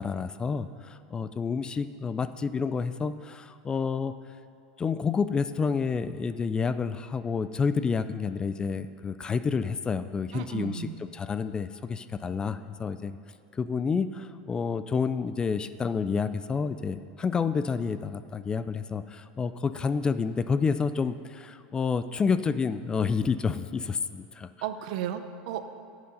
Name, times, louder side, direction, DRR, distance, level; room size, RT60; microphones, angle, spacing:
voice 1, 0.0-4.2 4.8-13.2 13.5-24.5, left 5 dB, 20° left, 13 dB, 0.3 m, -29 dB
voice 2, 10.3-11.0 24.6-25.6, right 9 dB, 65° right, 9 dB, 0.7 m, -34 dB
10.5 x 7.9 x 5.5 m, 2.5 s
supercardioid pair, 130°, 5 cm